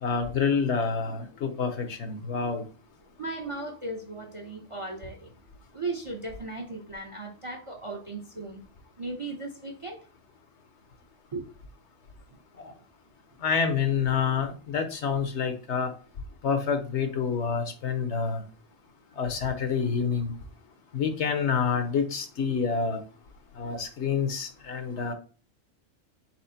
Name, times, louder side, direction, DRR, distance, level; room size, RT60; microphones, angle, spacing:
voice 1, 0.0-2.6 12.6-12.7 13.4-15.9 16.4-18.4 19.2-20.3 20.9-23.0 23.6-25.1, left 6 dB, 65° left, 7 dB, 1.0 m, -27 dB
voice 2, 3.2-5.3 5.7-8.6 9.0-10.0 11.3-11.4, right 2 dB, 40° right, 2 dB, 0.5 m, -36 dB
4.3 x 4.1 x 2.7 m, 0.37 s
omnidirectional pair, 1.4 m